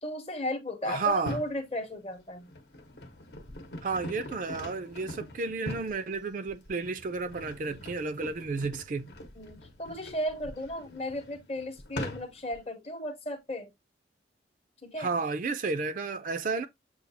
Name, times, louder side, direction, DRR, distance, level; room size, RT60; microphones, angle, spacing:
voice 1, 0.0-2.5 9.3-13.7 14.8-15.2, left 1 dB, 35° left, 0.8 m, -35 dB
voice 2, 0.9-1.4 3.8-9.1 15.0-16.7, right 4 dB, 45° right, 0.4 m, -32 dB
sound 1, 1.1-1.6 2.2-12.6, left 1 dB, 65° left, 0.9 m, -43 dB
7.0 x 2.3 x 2.6 m
head